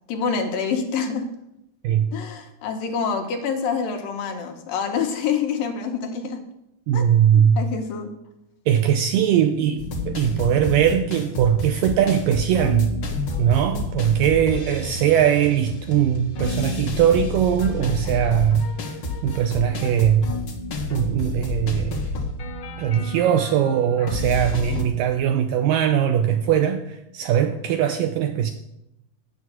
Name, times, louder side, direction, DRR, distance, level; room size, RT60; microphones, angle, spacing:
voice 1, 0.1-1.3 2.1-6.4 6.9-7.0 7.3-8.1, left 6 dB, 70° left, 4 dB, 2.7 m, -26 dB
voice 2, 6.9-7.6 8.7-12.9 13.4-18.7 19.2-20.3 20.9-22.1 22.8-28.5, right 9 dB, 90° right, 7 dB, 2.0 m, -20 dB
sound 1, 9.8-24.8, left 2 dB, 50° left, 1.6 m, -30 dB
9.5 x 8.1 x 7.4 m, 0.83 s
omnidirectional pair, 4.5 m